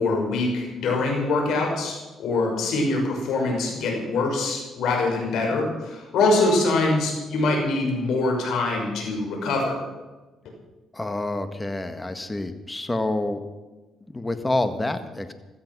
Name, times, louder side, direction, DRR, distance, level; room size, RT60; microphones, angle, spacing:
voice 1, 0.0-9.8, left 2 dB, 80° left, 1 dB, 5.8 m, -24 dB
voice 2, 10.9-13.4 14.1-15.3, left 2 dB, 15° left, 9 dB, 1.7 m, -27 dB
16.5 x 13.5 x 6.2 m, 1.2 s
cardioid pair, 90°, 0 cm